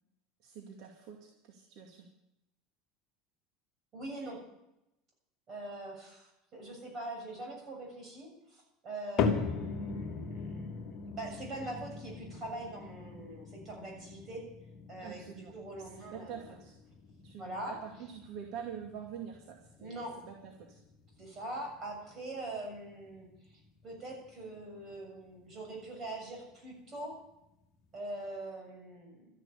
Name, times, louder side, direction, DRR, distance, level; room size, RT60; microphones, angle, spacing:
voice 1, 0.4-2.1 15.0-15.5 15.8-16.7 17.2-20.8, right 7 dB, 60° right, 2 dB, 2.4 m, -46 dB
voice 2, 3.9-4.5 5.5-14.5 14.9-16.5 17.4-17.8 19.8-20.2 21.2-27.2 27.9-29.3, right 2 dB, 30° right, 1 dB, 7.0 m, -43 dB
sound 1, 9.2-25.5 25.8-26.3 26.9-27.0 27.8-27.9, left 5 dB, 40° left, 2.0 m, -40 dB
13.5 x 11.0 x 8.5 m, 0.88 s
supercardioid pair, 150°, 0 cm